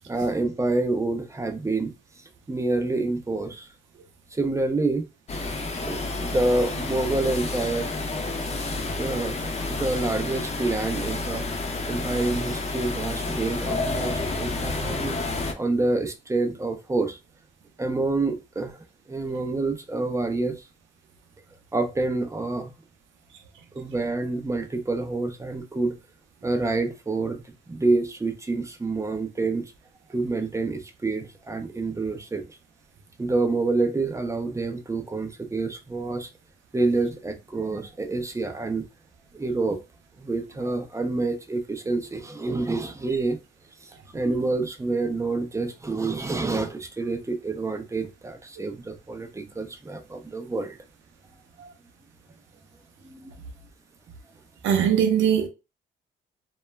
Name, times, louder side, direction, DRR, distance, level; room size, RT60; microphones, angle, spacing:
voice 1, 0.1-1.9 2.5-3.7 4.3-5.1 5.8-7.9 9.0-11.4 11.9-15.2 15.6-17.2 17.8-18.8 19.1-20.7 21.7-22.7 23.7-26.0 26.4-29.6 30.1-32.5 33.2-36.3 36.7-38.8 39.3-39.8 40.2-43.4 43.8-50.8 53.0-53.3, right 3 dB, 15° right, 0.5 m, -27 dB
sound 1, 5.3-15.5, left 2 dB, 35° left, 0.6 m, -30 dB
voice 2, 54.6-55.5, right 8 dB, 75° right, 0.5 m, -21 dB
2.2 x 2.1 x 3.2 m
cardioid pair, 90°, 20 cm